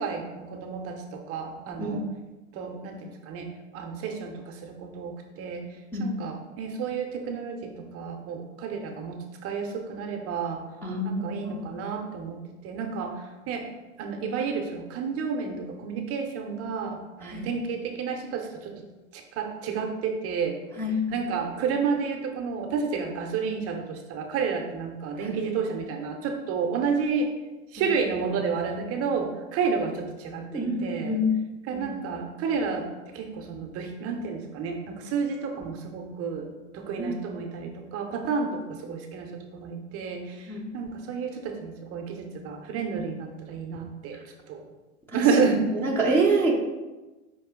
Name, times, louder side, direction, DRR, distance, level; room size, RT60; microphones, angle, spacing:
voice 1, 0.0-2.0 2.5-3.5 3.7-5.6 6.0-10.6 11.0-12.4 12.6-13.7 14.0-18.7 19.1-20.6 21.1-27.3 27.7-31.1 31.7-32.9 33.1-44.2 44.5-44.6 45.1-45.7, right 5 dB, 35° right, 3 dB, 0.6 m, -30 dB
voice 2, 10.8-11.7 17.2-17.5 20.8-21.5 25.2-25.4 30.5-31.3 31.7-32.0 37.0-37.2 40.5-40.6 45.1-45.2 45.8-46.5, right 1 dB, 5° left, -7 dB, 0.5 m, -27 dB
5.2 x 2.6 x 3.6 m, 1.1 s
hypercardioid pair, 110°, 41 cm